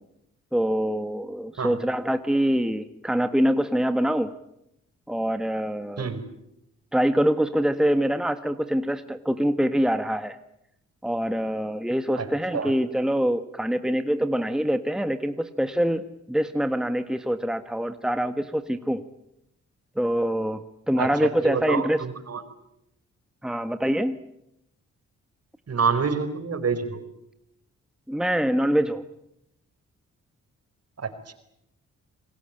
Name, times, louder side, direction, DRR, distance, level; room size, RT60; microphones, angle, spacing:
voice 1, 0.5-4.3 5.1-6.1 6.9-10.4 11.0-19.0 19.9-22.0 23.4-24.2 28.1-29.0, equal, ahead, 9 dB, 1.5 m, -25 dB
voice 2, 21.0-22.4 25.7-27.0 31.0-31.3, right 5 dB, 55° right, 9 dB, 4.5 m, -27 dB
28.5 x 20.0 x 9.0 m, 0.82 s
cardioid pair, 65°, 30 cm